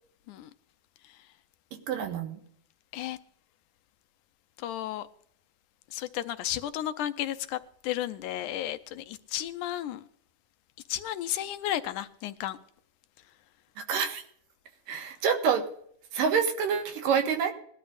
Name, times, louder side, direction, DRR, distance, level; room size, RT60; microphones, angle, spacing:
voice 1, 1.9-2.4 13.8-14.2 14.9-15.6 16.1-17.5, right 6 dB, 90° right, 5 dB, 3.2 m, -27 dB
voice 2, 4.6-5.1 5.9-10.1 10.9-12.6, left 12 dB, 75° left, 11 dB, 2.0 m, -33 dB
20.5 x 12.5 x 2.5 m, 0.65 s
omnidirectional pair, 3.8 m